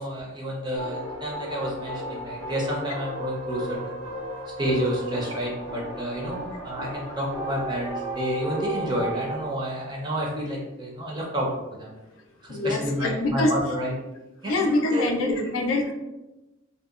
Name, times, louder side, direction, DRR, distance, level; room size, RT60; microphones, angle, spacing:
voice 1, 0.0-4.0 4.6-11.5 11.8-11.9 12.4-13.9 14.4-15.5, equal, 20° right, -3 dB, 0.5 m, -30 dB
sound 1, 0.8-9.5, right 1 dB, 85° right, 0.6 m, -35 dB
voice 2, 12.5-13.5 14.4-15.9, left 2 dB, 80° left, 2 dB, 0.4 m, -24 dB
2.7 x 2.0 x 2.4 m, 1.0 s
head